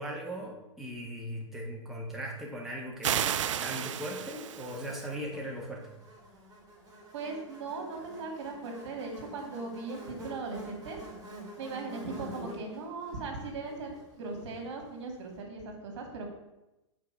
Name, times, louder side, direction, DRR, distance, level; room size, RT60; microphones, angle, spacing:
voice 1, 0.0-5.9, equal, ahead, -3 dB, 1.2 m, -39 dB
sound 1, 3.0-5.1, right 10 dB, 80° right, 0.4 m, -32 dB
Buzz, 4.6-15.0, equal, 20° right, 2.7 m, -48 dB
voice 2, 7.1-11.0 11.6-16.3, right 3 dB, 65° right, 1 dB, 2.2 m, -39 dB
5.9 x 4.7 x 5.9 m, 0.98 s
hypercardioid pair, 130°, 16 cm